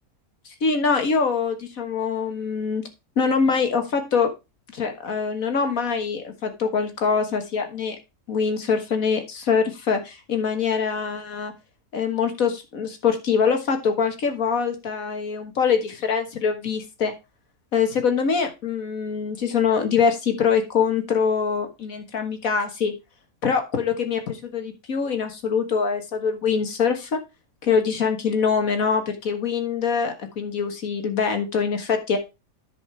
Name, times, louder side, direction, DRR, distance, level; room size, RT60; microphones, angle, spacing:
voice 1, 0.6-2.8 3.2-4.3 4.7-8.0 8.3-11.5 11.9-17.1 17.7-22.9 23.4-27.2 27.6-32.2, left 6 dB, 70° left, 6 dB, 2.0 m, -24 dB
10.0 x 5.2 x 4.5 m, 0.26 s
omnidirectional pair, 1.5 m